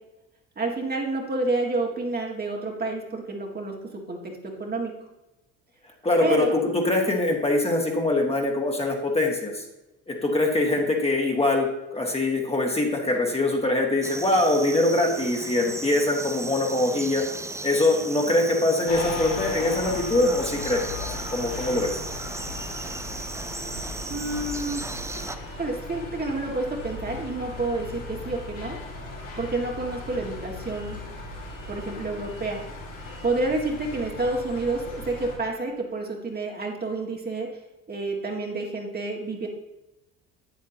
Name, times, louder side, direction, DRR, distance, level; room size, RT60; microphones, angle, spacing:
voice 1, 0.6-5.0 6.2-6.6 24.1-24.8 25.5-28.8 29.4-31.0 31.7-32.6 33.2-37.6 37.9-39.5, right 2 dB, 25° right, 0 dB, 2.0 m, -29 dB
voice 2, 6.0-9.6 10.1-17.2 17.6-22.0, left 2 dB, 15° left, 0 dB, 2.0 m, -23 dB
sound 1, 14.0-25.4, right 2 dB, 10° right, 0.7 m, -36 dB
sound 2, 18.9-35.4, left 2 dB, 70° left, 2.6 m, -37 dB
9.4 x 8.7 x 2.9 m, 0.99 s
figure-of-eight pair, 60°, 37 cm